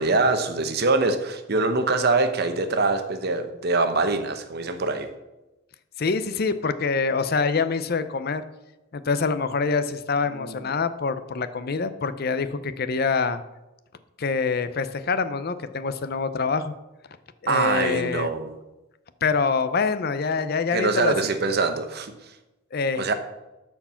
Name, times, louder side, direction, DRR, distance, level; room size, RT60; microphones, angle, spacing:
voice 1, 0.0-5.1 10.3-10.6 17.5-18.6 20.7-22.1 23.0-23.1, right 3 dB, 55° right, 8 dB, 0.9 m, -24 dB
voice 2, 6.0-8.4 8.9-13.4 14.2-16.7 17.4-18.3 19.2-21.4 22.7-23.1, left 4 dB, 55° left, 12 dB, 0.6 m, -25 dB
13.0 x 4.6 x 5.7 m, 1.0 s
head